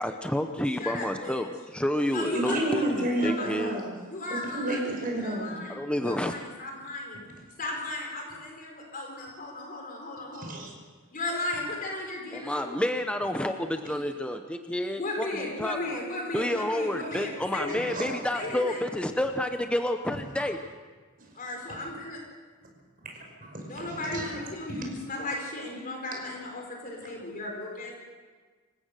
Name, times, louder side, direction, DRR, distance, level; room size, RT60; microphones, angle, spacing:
voice 1, 0.0-3.8 5.7-6.4 12.3-16.0 16.3-20.6, left 1 dB, 5° left, 5 dB, 0.8 m, -30 dB
voice 2, 0.5-1.4 2.1-3.8 4.1-4.9 5.2-7.2 7.6-10.6 11.1-12.8 14.9-18.0 18.3-18.8 21.4-22.2 23.6-28.0, left 2 dB, 40° left, 1 dB, 4.4 m, -36 dB
voice 3, 2.3-3.9 4.3-5.5 10.3-10.7 17.9-18.1 23.1-24.3, right 1 dB, 40° right, 1 dB, 5.7 m, -31 dB
27.0 x 15.5 x 6.6 m, 1.5 s
head